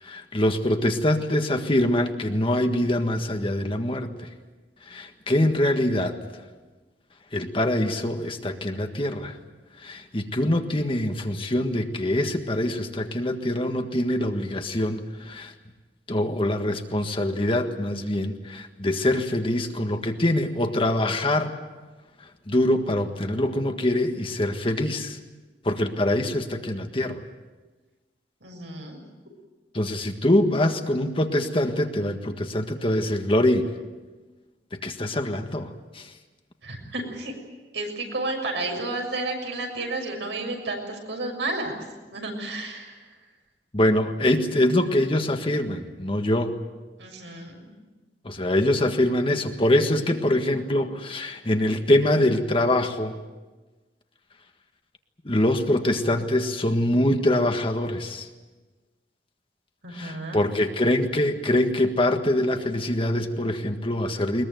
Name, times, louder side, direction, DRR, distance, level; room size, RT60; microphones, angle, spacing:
voice 1, 0.0-4.3 4.9-6.2 7.3-9.4 9.8-15.5 16.1-21.5 22.5-25.2 25.6-27.2 29.7-33.7 34.7-35.7 35.9-36.1 43.7-46.6 48.2-53.2 55.2-58.3 59.9-64.5, left 1 dB, 30° left, 5 dB, 1.6 m, -24 dB
voice 2, 28.4-29.0 36.6-37.3 37.7-41.7 42.1-43.0 47.0-47.7 59.8-60.4, right 2 dB, 80° right, 2 dB, 6.7 m, -31 dB
21.5 x 21.5 x 9.3 m, 1.2 s
head